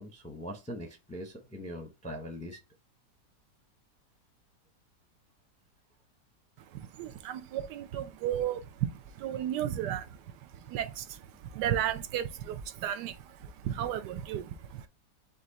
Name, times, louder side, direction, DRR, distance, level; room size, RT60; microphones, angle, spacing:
voice 1, 0.0-2.6, equal, 10° left, 0.5 m, -41 dB
voice 2, 6.7-10.2 10.5-14.9, right 10 dB, 80° right, 1.2 m, -34 dB
5.2 x 2.5 x 4.1 m
omnidirectional pair, 1.8 m